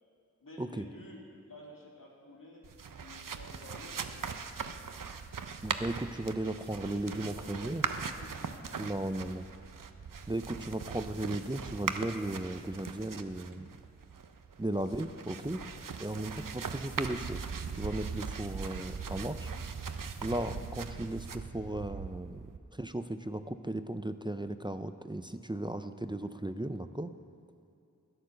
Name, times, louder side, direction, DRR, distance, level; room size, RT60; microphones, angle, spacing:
voice 1, 0.4-1.2 1.5-2.7 3.0-4.3 6.7-8.6 15.1-15.2 15.7-15.9 16.3-16.5, left 2 dB, 90° left, -2 dB, 2.1 m, -51 dB
sound 1, 2.6-22.6, right 5 dB, 85° right, 0.6 m, -40 dB
voice 2, 5.6-7.9 8.8-9.5 10.3-13.7 14.6-15.6 16.0-17.4 17.8-19.5 20.2-22.4 22.7-27.1, right 1 dB, 15° right, 10 dB, 0.4 m, -36 dB
12.0 x 9.0 x 6.7 m, 2.6 s
wide cardioid pair, 40°, 32 cm